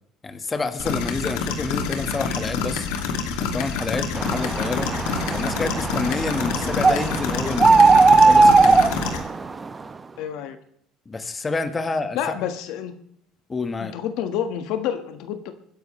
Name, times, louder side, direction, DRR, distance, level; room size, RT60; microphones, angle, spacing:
voice 1, 0.2-2.9 3.4-4.9 5.3-8.9 11.0-12.2 13.5-13.9, left 3 dB, 20° left, 8 dB, 1.5 m, -28 dB
sound 1, 0.8-9.2, left 5 dB, 90° left, 2.4 m, -27 dB
sound 2, 4.2-9.7, right 3 dB, 20° right, 0.9 m, -18 dB
voice 2, 10.2-10.6 12.1-12.9 13.8-15.5, left 9 dB, 75° left, 9 dB, 1.6 m, -28 dB
25.0 x 10.5 x 3.3 m, 0.68 s
cardioid pair, 115°, 0 cm